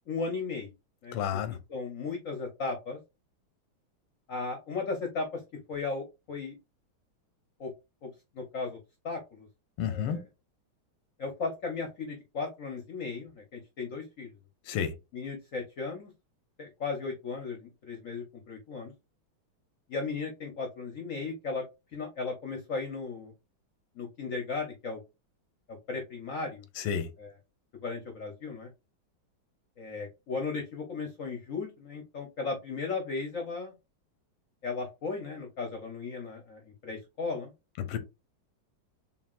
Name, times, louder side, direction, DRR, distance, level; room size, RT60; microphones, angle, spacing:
voice 1, 0.1-0.7 1.0-1.1 1.7-3.0 4.3-5.4 5.7-6.5 7.6-7.7 8.0-8.1 8.3-8.8 9.0-9.5 9.8-10.2 11.2-14.3 15.1-16.1 16.6-18.9 19.9-21.6 21.9-23.3 23.9-25.0 25.9-26.7 27.2-27.3 27.8-28.7 29.8-33.7 34.6-37.5, left 4 dB, 65° left, 0.8 m, -36 dB
voice 2, 1.1-1.6 9.8-10.2 14.7-14.9 26.8-27.1 37.9-38.0, left 8 dB, 90° left, 1.6 m, -30 dB
5.6 x 2.5 x 2.4 m
omnidirectional pair, 2.3 m